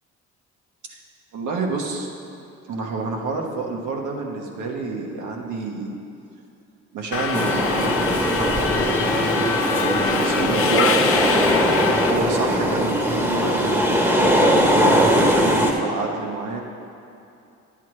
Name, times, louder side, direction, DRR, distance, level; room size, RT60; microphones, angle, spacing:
voice 1, 1.3-2.1 2.7-6.0 6.9-11.0 11.8-14.4 15.0-16.6, right 3 dB, 80° right, 0 dB, 1.3 m, -29 dB
Subway metro underground, 7.1-12.1, left 6 dB, 50° left, 0.7 m, -24 dB
sound 1, 7.3-15.7, equal, 10° right, 1.0 m, -20 dB
10.5 x 8.1 x 3.2 m, 2.7 s
cardioid pair, 90°, 30 cm